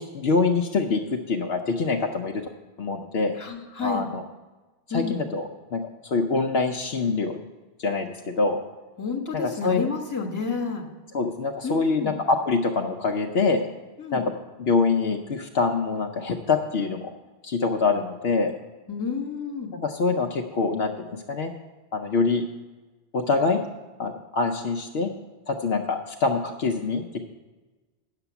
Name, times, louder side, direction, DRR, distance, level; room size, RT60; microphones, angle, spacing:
voice 1, 0.0-2.4 2.8-3.3 3.8-4.2 4.9-5.4 5.7-7.4 7.8-8.6 9.3-9.9 11.1-13.6 14.1-14.2 14.6-17.1 17.4-18.5 19.7-21.5 21.9-22.4 23.1-23.6 24.0-25.1 25.5-27.2, left 4 dB, 65° left, 4 dB, 0.9 m, -25 dB
voice 2, 3.4-4.0 4.9-5.2 9.0-10.9 11.6-12.2 14.0-14.2 18.9-19.7, left 5 dB, 15° left, -1 dB, 1.3 m, -30 dB
9.0 x 6.8 x 7.0 m, 1.2 s
omnidirectional pair, 1.1 m